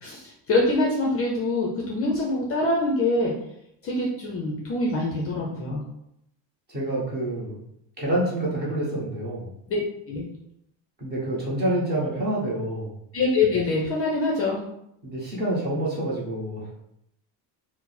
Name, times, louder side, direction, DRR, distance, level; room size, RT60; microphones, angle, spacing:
voice 1, 0.0-3.3 3.8-5.8 9.7-9.8 10.1-10.2 13.1-14.6, left 2 dB, 30° left, -2 dB, 0.5 m, -24 dB
voice 2, 6.7-7.6 8.0-9.5 11.0-12.9 15.0-16.7, right 1 dB, 20° right, -5 dB, 1.1 m, -27 dB
4.5 x 2.0 x 4.0 m, 0.78 s
cardioid pair, 170°, 46 cm